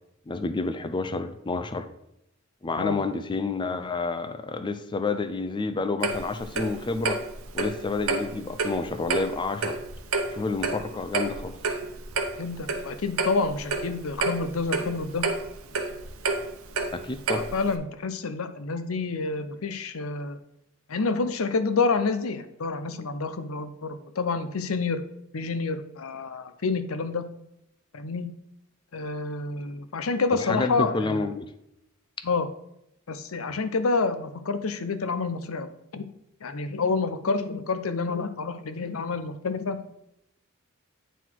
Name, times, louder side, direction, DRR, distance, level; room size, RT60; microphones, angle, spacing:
voice 1, 0.3-1.9 2.6-7.2 7.5-9.8 10.3-11.5 16.9-17.5 30.3-31.5, left 3 dB, 20° left, 9 dB, 0.4 m, -29 dB
Clock, 6.0-17.7, right 3 dB, 80° right, 0.9 m, -30 dB
voice 2, 12.4-15.2 17.3-20.4 20.9-25.0 25.3-27.2 27.9-28.3 28.9-31.2 32.2-32.5 33.1-35.7 35.9-36.1 36.4-39.8, left 4 dB, 85° left, 11 dB, 0.7 m, -28 dB
9.2 x 4.0 x 4.5 m, 0.81 s
head